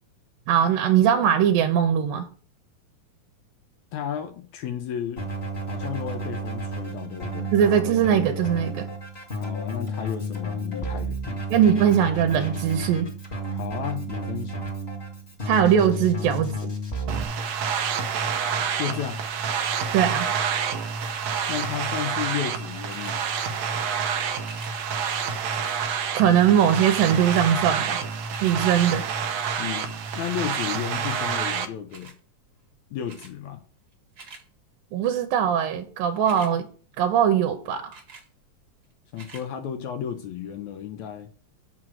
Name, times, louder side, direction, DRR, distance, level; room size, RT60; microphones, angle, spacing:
voice 1, 0.5-2.3 7.5-8.9 11.5-13.1 15.5-16.6 19.9-20.3 26.1-28.0 28.4-29.1 34.9-36.7 37.0-37.9, right 9 dB, 90° right, 2.6 m, -21 dB
voice 2, 3.9-5.3 5.7-7.5 9.4-11.6 13.5-14.7 18.6-19.2 21.5-23.3 29.6-29.9 30.2-32.1 32.9-33.6 39.1-41.3, left 9 dB, 75° left, 1.9 m, -33 dB
Keyboard (musical), 5.2-17.2, right 1 dB, 25° left, 1.6 m, -32 dB
sound 1, 17.1-31.7, right 6 dB, 70° right, 1.7 m, -28 dB
sound 2, 22.9-23.2 24.4-24.8 25.5-25.8 26.7-26.8 27.0-27.5 27.9-28.6 29.6-29.9 30.9-31.2 31.9-32.2 33.1-33.3 33.9-34.4 36.1-36.5 37.9-38.3 39.1-39.5 40.1-40.2, right 4 dB, 40° right, 1.4 m, -45 dB
6.2 x 6.2 x 7.2 m
omnidirectional pair, 4.0 m